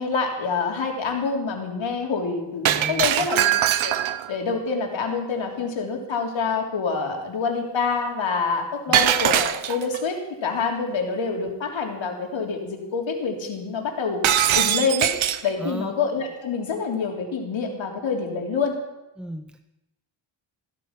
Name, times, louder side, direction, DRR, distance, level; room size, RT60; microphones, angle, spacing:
voice 1, 0.0-3.4 3.8-3.9 4.3-14.2 14.5-15.1 15.4-18.8, left 4 dB, 70° left, 2 dB, 3.3 m, -26 dB
voice 2, 2.7-3.1 8.9-9.0 15.6-15.9 19.2-19.6, equal, ahead, 7 dB, 0.7 m, -34 dB
Shatter, 2.7-4.3 8.9-10.0 14.2-15.5, right 11 dB, 80° right, 1.0 m, -21 dB
15.5 x 13.0 x 5.9 m, 0.97 s
cardioid pair, 105°, 47 cm